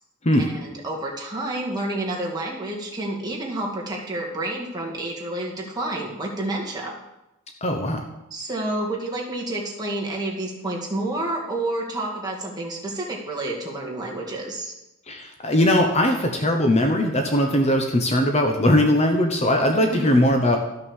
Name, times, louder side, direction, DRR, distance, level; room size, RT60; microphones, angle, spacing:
voice 1, 0.6-7.0 8.3-14.7 19.8-20.1, right 1 dB, 20° right, -3 dB, 2.1 m, -29 dB
voice 2, 7.6-8.0 15.1-20.6, left 1 dB, 30° left, 3 dB, 1.0 m, -20 dB
13.0 x 6.2 x 6.4 m, 0.94 s
head